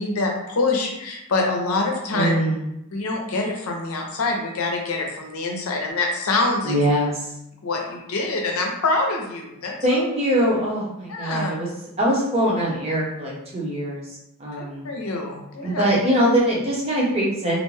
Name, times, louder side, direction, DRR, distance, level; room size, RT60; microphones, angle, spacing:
voice 1, 0.0-2.3 2.9-6.7 7.6-9.7 11.1-11.5 14.6-15.8, left 3 dB, 85° left, 1 dB, 0.6 m, -25 dB
voice 2, 2.1-2.7 6.6-7.3 9.8-11.7 12.0-14.9 15.6-17.6, equal, 30° right, -4 dB, 0.6 m, -22 dB
2.5 x 2.1 x 3.1 m, 0.84 s
head